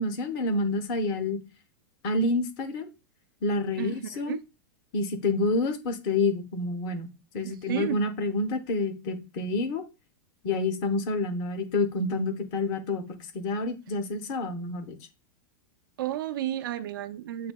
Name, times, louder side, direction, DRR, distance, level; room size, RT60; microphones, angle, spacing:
voice 1, 0.0-1.4 2.0-2.9 3.4-4.4 4.9-7.1 7.3-9.8 10.4-15.0, left 2 dB, 40° left, 0.9 m, -28 dB
voice 2, 3.8-4.4 7.4-8.0 16.0-17.5, right 12 dB, 80° right, 0.5 m, -32 dB
7.7 x 2.7 x 2.2 m
supercardioid pair, 160°, 11 cm